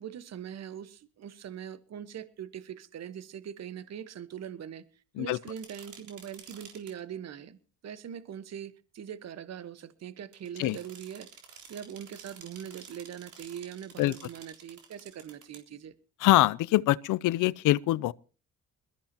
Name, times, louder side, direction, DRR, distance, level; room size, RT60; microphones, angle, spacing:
voice 1, 0.0-11.3 11.7-15.9, right 9 dB, 60° right, 1.3 m, -42 dB
sound 1, 5.5-6.9 10.3-15.6, right 7 dB, 75° right, 3.7 m, -51 dB
voice 2, 16.2-18.1, left 17 dB, 85° left, 0.6 m, -24 dB
21.5 x 14.0 x 2.9 m
cardioid pair, 90°, 30 cm